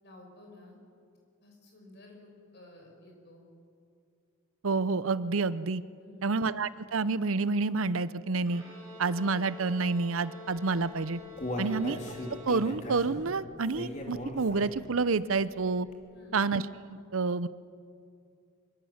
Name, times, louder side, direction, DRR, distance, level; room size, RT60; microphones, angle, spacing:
voice 1, 0.0-0.8 1.4-3.5 5.9-6.3 11.6-11.9 16.1-16.4, left 2 dB, 55° left, 1 dB, 6.3 m, -53 dB
voice 2, 4.6-5.8 6.2-8.6 9.0-11.2 11.6-12.0 12.3-15.9 16.3-16.6 16.9-17.5, right 4 dB, 80° right, 16 dB, 0.7 m, -29 dB
Bowed string instrument, 8.4-13.2, left 2 dB, 20° right, 7.0 m, -48 dB
Human voice, 10.8-14.9 15.3-15.4 15.9-16.0, left 1 dB, 35° left, 2.9 m, -38 dB
24.5 x 24.0 x 7.3 m, 2.5 s
head